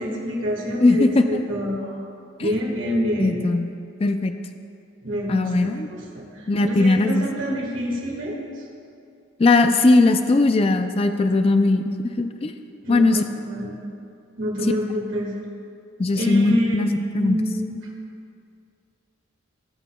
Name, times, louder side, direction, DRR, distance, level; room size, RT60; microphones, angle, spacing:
voice 1, 0.0-2.0 2.4-3.4 5.0-8.7 12.8-13.8 14.4-15.3 16.1-16.8 17.1-17.8, equal, 80° right, -3 dB, 1.7 m, -27 dB
voice 2, 0.8-1.4 2.4-2.5 3.2-3.7 4.0-4.3 5.3-5.9 6.5-7.2 9.4-12.5 12.9-13.2 16.0-17.4, left 2 dB, 30° left, 7 dB, 0.3 m, -19 dB
18.0 x 6.3 x 2.2 m, 2.4 s
head